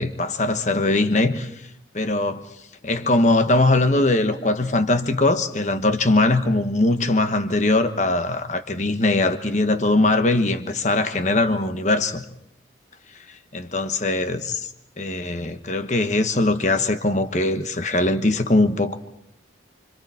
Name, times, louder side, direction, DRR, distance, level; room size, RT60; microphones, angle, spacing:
voice 1, 0.0-1.5 1.9-2.4 2.8-12.2 13.5-14.7 15.0-18.9, left 2 dB, 40° left, 1.3 m, -21 dB
29.5 x 25.5 x 4.4 m
head